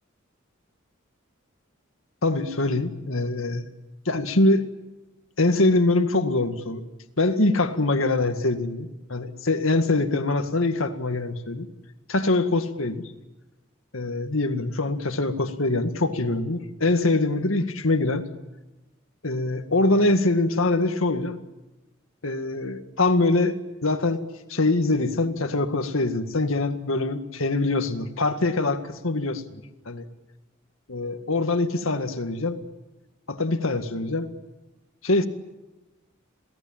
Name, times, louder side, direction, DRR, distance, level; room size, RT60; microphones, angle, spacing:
voice 1, 2.2-3.7 4.1-4.7 5.4-6.8 7.2-11.7 12.1-13.0 13.9-18.3 19.2-21.4 22.2-24.2 24.5-29.4 29.9-30.1 30.9-32.6 33.3-34.3 35.0-35.3, left 2 dB, 80° left, 8 dB, 2.0 m, -23 dB
27.5 x 18.0 x 8.9 m, 1.1 s
head